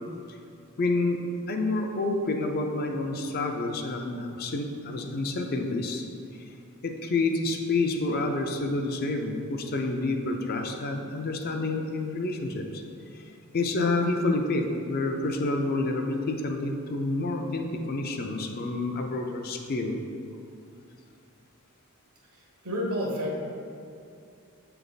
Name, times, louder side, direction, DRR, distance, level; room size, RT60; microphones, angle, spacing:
voice 1, 0.8-1.2 1.5-6.0 6.8-12.8 13.1-13.2 13.5-20.0, left 2 dB, 45° left, 3 dB, 0.5 m, -28 dB
voice 2, 22.3-23.3, equal, 80° right, -2 dB, 1.2 m, -30 dB
7.1 x 3.4 x 3.9 m, 2.6 s
head